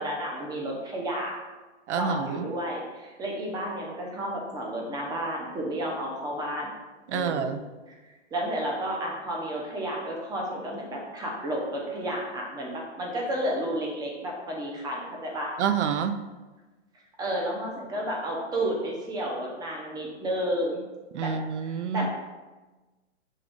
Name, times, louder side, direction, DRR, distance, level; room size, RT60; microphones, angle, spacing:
voice 1, 0.0-1.3 1.9-6.7 7.1-7.5 7.9-8.0 8.3-15.6 17.2-20.8 21.2-21.3 21.7-22.1, right 1 dB, 10° right, -1 dB, 0.6 m, -31 dB
voice 2, 1.9-2.5 7.1-7.6 15.6-16.3 21.1-22.1, right 7 dB, 75° right, 9 dB, 0.5 m, -28 dB
5.5 x 2.5 x 3.5 m, 1.2 s
hypercardioid pair, 135°, 36 cm